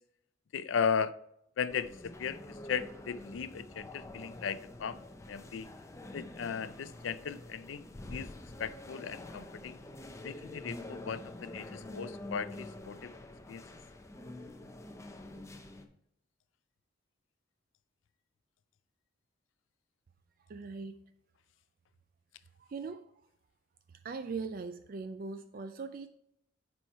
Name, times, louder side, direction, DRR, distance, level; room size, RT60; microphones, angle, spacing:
voice 1, 0.5-1.1 1.6-5.0 5.3-5.7 6.1-8.3 8.6-9.8 10.2-13.2 13.5-13.6, left 6 dB, 75° left, 15 dB, 0.4 m, -36 dB
sound 1, 1.7-15.9, left 1 dB, 15° left, 0.5 m, -47 dB
voice 2, 20.5-21.0 22.6-23.3 23.9-26.1, right 4 dB, 45° right, 10 dB, 0.3 m, -40 dB
7.1 x 4.4 x 4.5 m, 0.74 s
head